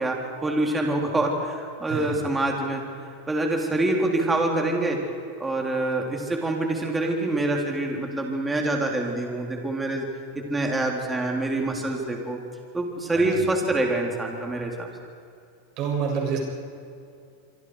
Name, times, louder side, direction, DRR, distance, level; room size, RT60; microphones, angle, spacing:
voice 1, 0.0-2.8 3.3-5.0 5.4-10.1 10.3-12.4 12.7-14.9, right 2 dB, 10° right, 1 dB, 3.6 m, -26 dB
voice 2, 1.9-2.2 13.1-13.5 15.8-16.4, right 6 dB, 45° right, -1 dB, 7.4 m, -28 dB
26.0 x 25.0 x 4.9 m, 2.5 s
supercardioid pair, 140°, 0 cm